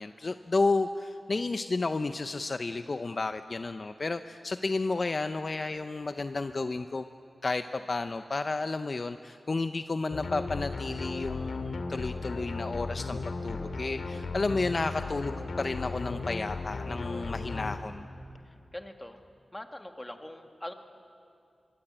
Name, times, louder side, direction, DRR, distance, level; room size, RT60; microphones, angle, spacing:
voice 1, 0.0-7.1 7.4-18.1, left 3 dB, 50° left, 9 dB, 0.7 m, -32 dB
sound 1, 10.1-17.8, left 3 dB, 85° left, 2.2 m, -36 dB
voice 2, 18.5-19.2 19.5-20.7, left 1 dB, 15° left, 6 dB, 1.9 m, -42 dB
24.0 x 23.5 x 8.9 m, 2.5 s
wide cardioid pair, 90°, 0 cm